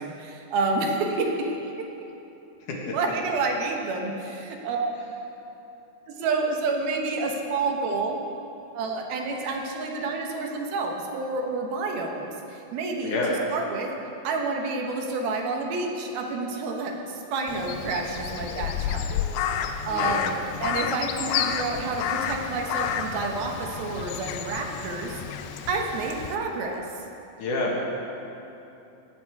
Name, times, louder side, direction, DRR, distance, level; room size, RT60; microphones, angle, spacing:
voice 1, 0.0-1.9 2.9-4.9 6.1-8.2 8.7-13.2 13.5-13.9 14.2-19.1 19.9-25.2 25.7-26.9, right 3 dB, 80° right, 2 dB, 3.0 m, -29 dB
voice 2, 13.0-13.4 19.9-20.3 27.4-27.8, left 2 dB, 65° left, -3 dB, 2.9 m, -27 dB
Crow, 17.5-26.4, left 8 dB, 85° left, 2.5 m, -30 dB
18.0 x 9.1 x 4.7 m, 2.9 s
omnidirectional pair, 4.3 m